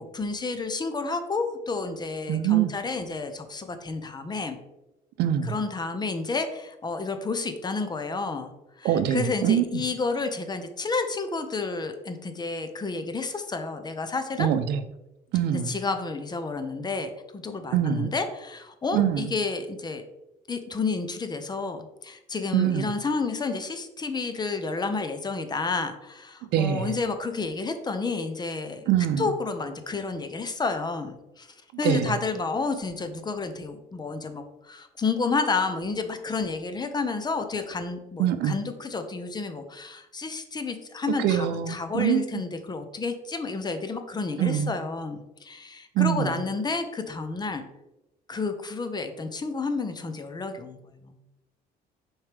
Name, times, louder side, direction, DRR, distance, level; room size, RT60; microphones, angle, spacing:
voice 1, 0.0-4.6 5.4-8.5 8.8-14.5 15.5-20.0 20.5-28.8 29.2-31.5 31.8-47.6 48.3-50.8, left 4 dB, 25° left, 8 dB, 0.8 m, -30 dB
voice 2, 2.3-2.7 5.2-5.5 8.8-9.8 14.4-14.8 15.3-15.7 17.7-18.1 18.9-19.3 22.5-22.9 26.5-26.9 28.9-29.3 31.8-32.1 38.2-38.6 41.2-42.4 44.4-44.7 46.0-46.4, right 10 dB, 75° right, 11 dB, 0.6 m, -24 dB
7.0 x 4.5 x 3.5 m, 0.94 s
cardioid pair, 110°, 17 cm